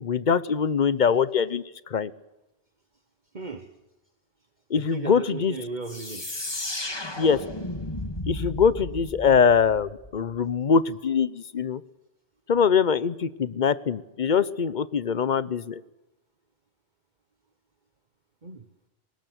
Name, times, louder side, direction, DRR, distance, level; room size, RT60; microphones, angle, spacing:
voice 1, 0.0-2.1 4.7-5.5 7.2-7.4 8.3-11.8 12.5-15.8, left 6 dB, 50° left, 18 dB, 1.0 m, -23 dB
voice 2, 3.3-3.7 4.7-6.3 18.4-18.7, right 4 dB, 45° right, 8 dB, 1.6 m, -36 dB
sound 1, 5.8-10.4, left 1 dB, 25° left, 1.9 m, -34 dB
21.0 x 18.5 x 8.1 m, 0.94 s
omnidirectional pair, 1.1 m